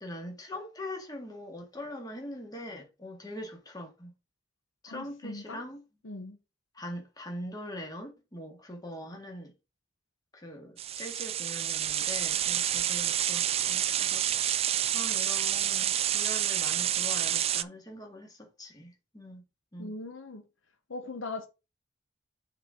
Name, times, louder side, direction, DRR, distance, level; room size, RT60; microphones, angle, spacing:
voice 1, 0.0-4.1 4.8-5.8 6.8-9.5 10.3-19.4 19.7-19.9, left 1 dB, 20° left, 1.8 m, -42 dB
voice 2, 4.9-5.6 6.0-6.4 19.8-20.4 20.9-21.5, left 3 dB, 75° left, 1.0 m, -40 dB
sound 1, 10.8-17.6, right 11 dB, 30° right, 0.3 m, -28 dB
6.7 x 4.1 x 5.0 m
head